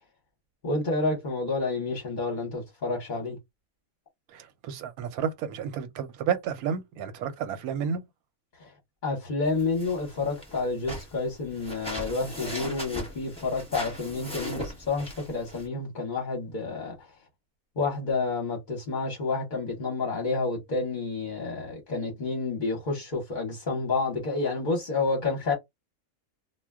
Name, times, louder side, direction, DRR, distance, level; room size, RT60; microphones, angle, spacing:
voice 1, 0.6-3.4 8.6-8.7 9.0-16.9 17.8-25.5, left 3 dB, 40° left, 0.8 m, -29 dB
voice 2, 4.3-8.0, right 7 dB, 85° right, 1.1 m, -31 dB
sound 1, 9.4-15.7, equal, 5° left, 0.8 m, -39 dB
2.3 x 2.2 x 3.4 m
omnidirectional pair, 1.5 m